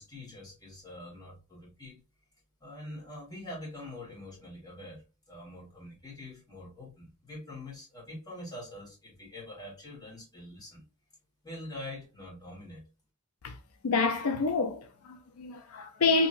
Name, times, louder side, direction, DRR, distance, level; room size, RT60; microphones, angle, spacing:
voice 1, 0.0-2.0 2.6-10.8 11.4-12.8, left 1 dB, 20° left, 1.5 m, -45 dB
voice 2, 13.8-16.3, left 4 dB, 80° left, 0.5 m, -28 dB
2.8 x 2.7 x 2.5 m
head